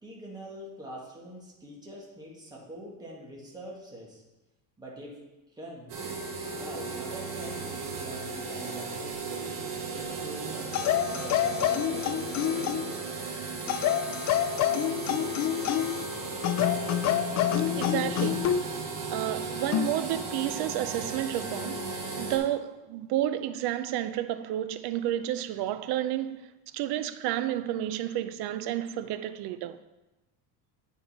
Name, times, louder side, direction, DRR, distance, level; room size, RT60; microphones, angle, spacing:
voice 1, 0.0-4.2 4.8-5.2 5.6-6.0 6.5-12.1, right 1 dB, 10° right, 2.0 m, -44 dB
sound 1, 5.9-22.4, right 4 dB, 80° right, 2.2 m, -36 dB
sound 2, 10.7-13.0 13.7-16.0 16.4-18.6 19.7-20.0, left 11 dB, 40° left, 0.4 m, -27 dB
voice 2, 17.8-18.5 19.1-29.8, right 12 dB, 65° right, 0.6 m, -31 dB
9.6 x 5.6 x 4.3 m
cardioid pair, 140°, 42 cm